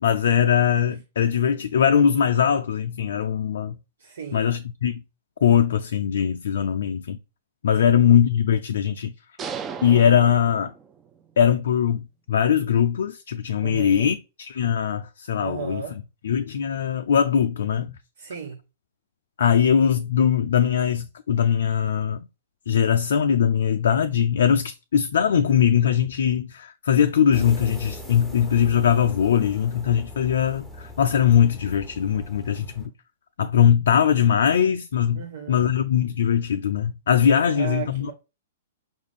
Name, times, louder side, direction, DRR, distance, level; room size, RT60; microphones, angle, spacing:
voice 1, 0.0-3.8 4.3-5.0 5.4-7.2 7.6-9.1 9.8-10.7 11.4-15.8 16.2-17.9 19.4-22.2 22.7-32.9 33.4-38.1, left 8 dB, 70° left, 0.3 m, -21 dB
voice 2, 4.0-4.5 7.8-7.9 13.6-14.1 15.4-16.0 18.2-18.6 35.1-35.7 37.5-38.1, right 6 dB, 70° right, 0.7 m, -34 dB
sound 1, 9.4-11.2, right 6 dB, 20° right, 0.5 m, -36 dB
sound 2, 27.3-32.9, left 1 dB, 5° right, 0.9 m, -40 dB
5.1 x 2.4 x 3.3 m
hypercardioid pair, 115°, 0 cm